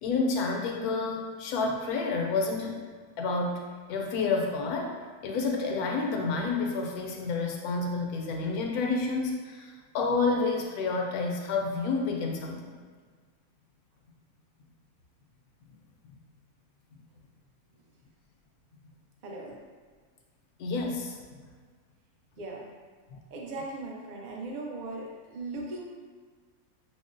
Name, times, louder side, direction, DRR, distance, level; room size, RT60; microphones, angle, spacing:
voice 1, 0.0-2.8 3.2-5.0 5.2-12.7 20.6-21.2 23.1-23.2, left 4 dB, 85° left, 1 dB, 1.1 m, -29 dB
voice 2, 19.2-19.6 22.4-22.7 23.3-25.8, right 2 dB, 70° right, -1 dB, 0.4 m, -38 dB
5.7 x 2.0 x 2.5 m, 1.5 s
omnidirectional pair, 1.5 m